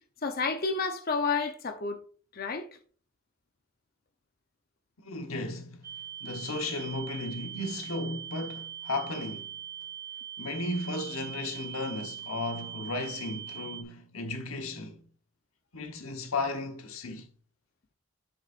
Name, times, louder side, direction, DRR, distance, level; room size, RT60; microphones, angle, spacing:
voice 1, 0.2-2.0 2.3-2.7, left 4 dB, 45° left, 0.7 m, -30 dB
voice 2, 5.0-5.9 6.2-9.5 10.4-15.0 15.7-17.3, left 2 dB, 85° left, 1.2 m, -35 dB
sound 1, 5.8-13.8, right 9 dB, 40° right, 1.4 m, -42 dB
8.3 x 7.2 x 2.5 m
head